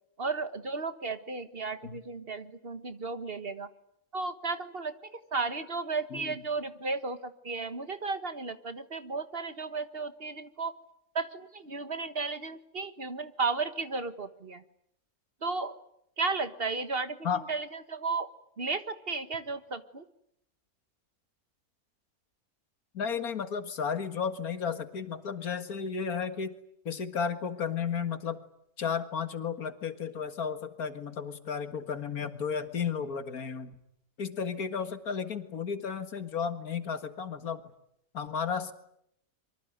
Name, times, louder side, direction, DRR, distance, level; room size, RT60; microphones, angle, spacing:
voice 1, 0.2-3.7 4.1-10.7 11.1-14.6 15.4-15.7 16.2-18.3 18.6-20.0, right 4 dB, 40° right, 11 dB, 1.6 m, -34 dB
voice 2, 22.9-26.6 26.9-28.4 28.8-33.7 34.2-37.6 38.1-38.7, left 6 dB, 90° left, 10 dB, 2.3 m, -33 dB
25.5 x 24.0 x 9.3 m, 0.76 s
omnidirectional pair, 1.5 m